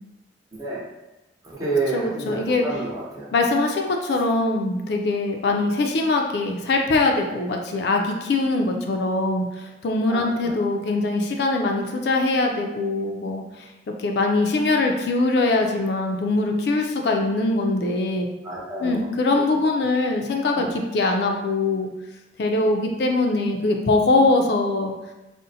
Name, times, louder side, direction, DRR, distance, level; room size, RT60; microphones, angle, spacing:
voice 1, 0.5-0.8 1.4-3.3 10.1-10.6 18.4-19.1 19.3-19.8 20.5-20.7, right 3 dB, 20° right, -6 dB, 0.8 m, -30 dB
voice 2, 1.9-2.6 3.3-9.4 9.8-13.4 14.0-18.3 18.8-21.9 22.4-24.9, left 2 dB, 60° left, 2 dB, 0.3 m, -22 dB
3.9 x 2.1 x 2.6 m, 1.0 s
head